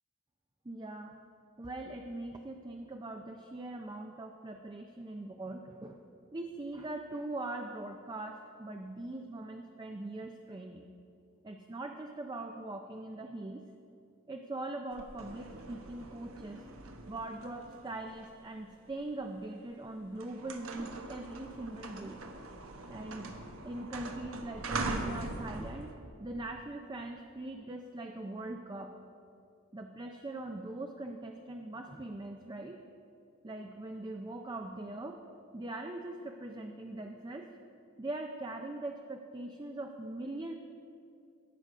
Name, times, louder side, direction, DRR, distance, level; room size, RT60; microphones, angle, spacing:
voice 1, 0.6-1.2 1.6-6.0 6.3-10.9 11.4-13.6 14.3-16.6 17.1-22.2 22.9-23.4 23.6-25.9 26.2-29.0 29.7-32.8 33.4-35.2 35.5-37.5 38.0-40.5, right 2 dB, 20° right, 4 dB, 0.5 m, -41 dB
sound 1, 14.9-19.1 19.7-19.9 20.2-26.0, right 2 dB, 70° right, 1.0 m, -42 dB
17.5 x 6.8 x 4.9 m, 2.5 s
head